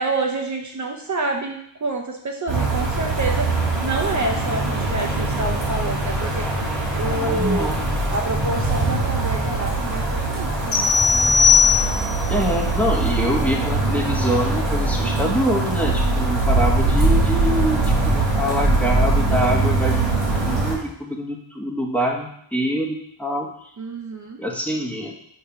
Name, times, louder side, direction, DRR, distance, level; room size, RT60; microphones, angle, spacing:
voice 1, 0.0-3.5 3.8-6.5 7.0-7.7 8.1-10.9 23.8-24.4, right 2 dB, 40° right, 2 dB, 0.6 m, -28 dB
sound 1, 2.5-20.8, right 2 dB, 85° right, 2.1 m, -22 dB
voice 2, 7.0-7.8 12.3-23.7 24.4-25.1, equal, 5° left, -1 dB, 0.7 m, -25 dB
sound 2, 10.7-12.2, left 6 dB, 40° left, 1.6 m, -17 dB
6.7 x 2.7 x 5.6 m, 0.71 s
wide cardioid pair, 170°, 43 cm